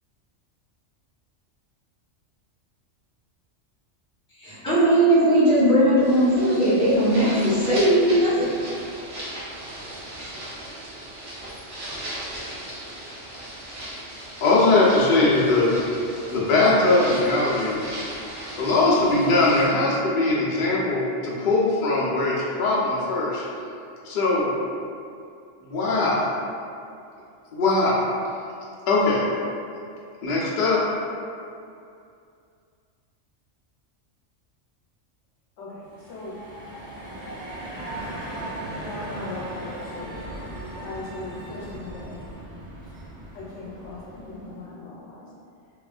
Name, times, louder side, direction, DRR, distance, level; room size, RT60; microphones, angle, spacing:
voice 1, 4.4-8.4, right 1 dB, 5° left, -14 dB, 0.8 m, -19 dB
sound 1, 6.0-19.7, right 1 dB, 65° right, 1.0 m, -37 dB
voice 2, 14.4-15.7 16.3-17.8 18.5-23.4 24.0-24.5 25.6-26.3 27.5-28.0 28.9-29.2 30.2-30.8, left 2 dB, 55° left, -6 dB, 0.6 m, -20 dB
voice 3, 35.6-36.4 38.8-40.3 40.7-42.1 43.3-45.3, left 2 dB, 85° left, -6 dB, 1.0 m, -38 dB
sound 2, 35.8-44.6, right 1 dB, 85° right, 1.2 m, -37 dB
2.9 x 2.4 x 2.3 m, 2.4 s
omnidirectional pair, 1.2 m